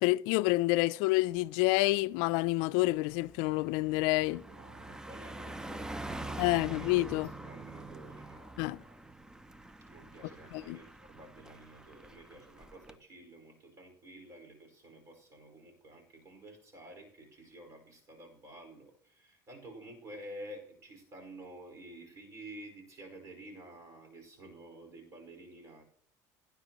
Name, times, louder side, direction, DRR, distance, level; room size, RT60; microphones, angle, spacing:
voice 1, 0.0-4.4 6.4-7.3 8.6-8.8 10.5-10.8, left 20 dB, 80° left, 0.4 m, -28 dB
Car passing by, 1.4-1.6 2.0-13.0, right 2 dB, 10° right, 0.5 m, -45 dB
voice 2, 4.4-9.0 9.8-25.8, right 1 dB, 40° right, 4.9 m, -51 dB
18.0 x 10.0 x 3.0 m
cardioid pair, 130°, 8 cm